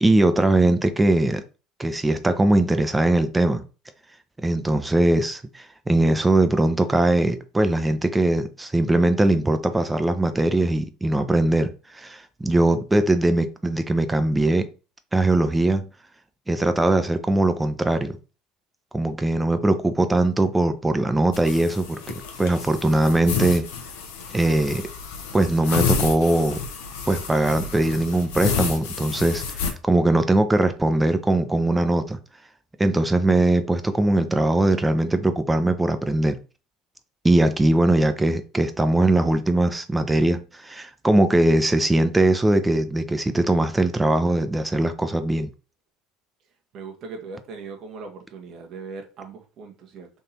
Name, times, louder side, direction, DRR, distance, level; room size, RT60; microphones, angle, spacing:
voice 1, 0.0-1.4 1.8-3.6 4.4-14.7 15.1-15.9 16.5-18.2 18.9-23.7 24.3-24.8 25.3-26.6 27.1-32.2 32.8-36.4 37.2-45.5, right 2 dB, 15° right, 0.6 m, -21 dB
sound 1, 21.3-29.7, left 6 dB, 75° left, 0.9 m, -30 dB
voice 2, 46.7-50.1, right 4 dB, 55° right, 1.1 m, -39 dB
3.6 x 2.8 x 4.2 m
hypercardioid pair, 75°, 0 cm